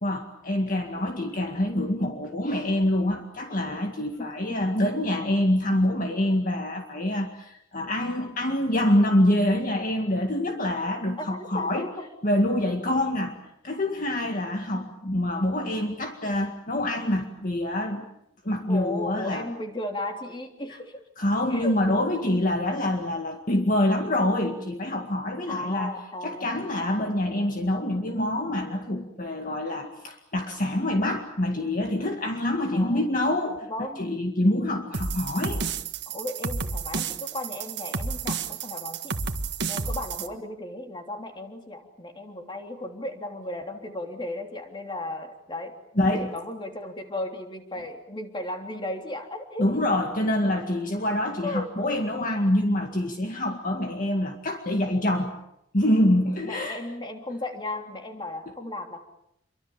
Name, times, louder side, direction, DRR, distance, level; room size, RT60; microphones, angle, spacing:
voice 1, 0.0-11.9 12.2-13.3 13.6-18.1 18.4-19.5 21.2-26.0 26.2-33.7 34.0-35.6 46.0-46.3 49.6-55.3 55.7-56.8, left 1 dB, 40° left, 3 dB, 2.0 m, -26 dB
voice 2, 4.2-4.6 11.2-12.1 18.7-21.0 21.5-21.7 25.5-26.6 32.7-33.0 33.7-34.0 36.1-39.1 39.7-45.7 46.1-50.0 51.4-51.7 56.4-59.0, left 2 dB, 25° left, 4 dB, 3.3 m, -35 dB
sound 1, 34.9-40.3, right 4 dB, 55° right, 1.7 m, -31 dB
28.5 x 24.0 x 7.3 m, 0.78 s
head